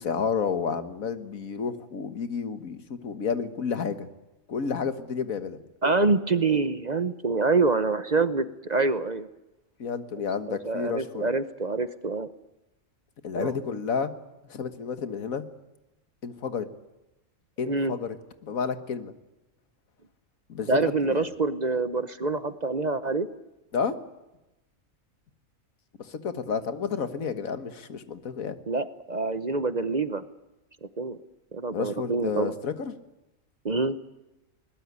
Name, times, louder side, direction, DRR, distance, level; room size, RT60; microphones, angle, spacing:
voice 1, 0.0-4.1 4.5-5.6 9.8-11.3 13.2-14.1 14.4-15.5 16.2-16.7 17.6-18.2 18.4-19.1 20.5-21.3 23.7-24.0 26.0-28.6 31.7-32.9, left 6 dB, 85° left, 10 dB, 1.9 m, -31 dB
voice 2, 5.8-9.3 10.5-12.3 13.3-13.5 17.7-17.9 20.7-23.3 28.7-30.2 31.0-31.2 31.5-32.5 33.6-34.0, right 3 dB, 35° right, 12 dB, 0.9 m, -26 dB
21.0 x 20.0 x 9.5 m, 0.97 s
omnidirectional pair, 1.4 m